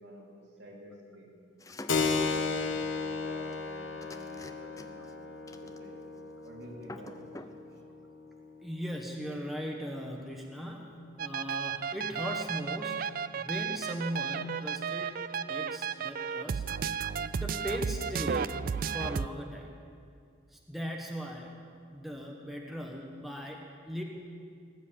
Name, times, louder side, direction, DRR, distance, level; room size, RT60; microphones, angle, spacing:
voice 1, 0.0-1.4 2.1-5.1 5.5-6.0 6.4-7.8, equal, 65° right, -2 dB, 3.1 m, -50 dB
sound 1, 1.6-2.1 3.5-3.7 4.0-5.1 5.5-6.2 6.4-6.5 6.8-7.6, left 2 dB, 15° left, 0.6 m, -47 dB
Keyboard (musical), 1.9-10.1, left 4 dB, 85° left, 1.1 m, -35 dB
voice 2, 8.6-17.1 17.4-18.7 18.9-19.7 20.5-21.6 21.9-24.0, equal, ahead, 0 dB, 1.1 m, -39 dB
sound 2, 11.2-19.3, right 6 dB, 45° right, 0.3 m, -33 dB
19.0 x 7.5 x 8.8 m, 2.3 s
head